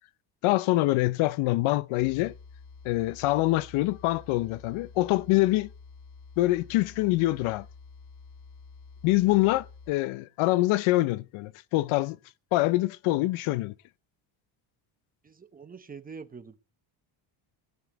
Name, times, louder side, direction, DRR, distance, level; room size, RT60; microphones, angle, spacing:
voice 1, 0.4-2.3 2.8-5.7 6.4-7.7 9.0-12.2 12.5-13.7, left 18 dB, 75° left, 0.7 m, -25 dB
sound 1, 2.0-9.9, left 4 dB, 55° left, 1.3 m, -49 dB
voice 2, 15.2-16.6, right 5 dB, 15° right, 0.8 m, -45 dB
16.5 x 7.1 x 8.0 m
cardioid pair, 155°, 49 cm